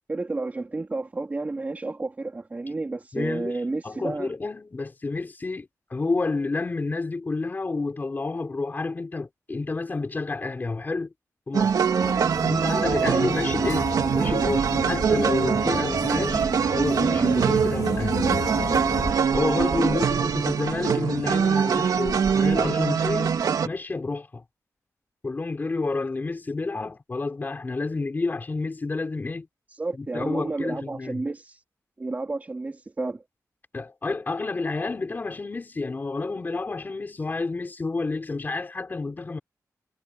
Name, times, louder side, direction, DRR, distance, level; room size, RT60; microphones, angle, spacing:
voice 1, 0.1-4.3 11.9-12.2 19.7-20.1 29.7-31.6 32.0-33.2, right 3 dB, 25° right, 3.5 m, -31 dB
voice 2, 3.1-11.1 11.5-11.7 12.5-18.2 19.3-24.4 25.2-29.5 29.9-31.2 33.7-39.4, left 3 dB, 30° left, 3.9 m, -29 dB
sound 1, 11.5-23.7, right 6 dB, 90° right, 2.9 m, -23 dB
sound 2, 12.0-19.1, left 6 dB, 65° left, 2.5 m, -34 dB
wide cardioid pair, 145°, 6 cm